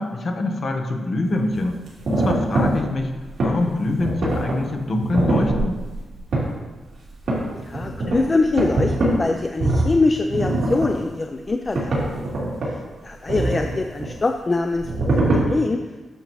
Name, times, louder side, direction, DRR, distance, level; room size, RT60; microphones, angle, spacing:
voice 1, 0.0-1.8 2.1-3.1 3.4-5.8, left 2 dB, 45° left, 3 dB, 1.0 m, -24 dB
sound 1, 1.2-1.3 1.6-3.5 4.0-4.7 5.0-6.5 7.1-9.1 9.5-9.9 10.3-10.9 11.4-11.5 11.7-12.7 13.3-14.1 14.7-15.4, right 2 dB, 55° right, 2.9 m, -22 dB
voice 2, 7.7-11.9 13.0-15.1 15.3-15.8, left 3 dB, 25° left, 5 dB, 0.4 m, -23 dB
11.0 x 6.8 x 3.1 m, 1.2 s
wide cardioid pair, 155°, 0 cm